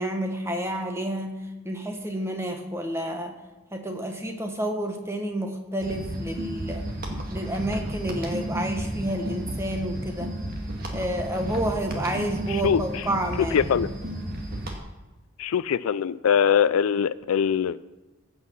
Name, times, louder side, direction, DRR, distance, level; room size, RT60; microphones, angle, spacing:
voice 1, 0.0-1.3 1.6-3.3 3.7-6.9 7.3-10.3 10.9-13.9, right 1 dB, 10° right, 4 dB, 1.2 m, -30 dB
sound 1, 5.8-14.8, right 1 dB, 45° right, 1.8 m, -33 dB
voice 2, 12.5-12.8 13.5-13.9 15.4-17.8, left 7 dB, 85° left, 17 dB, 0.4 m, -22 dB
15.5 x 5.6 x 6.2 m, 1.1 s
head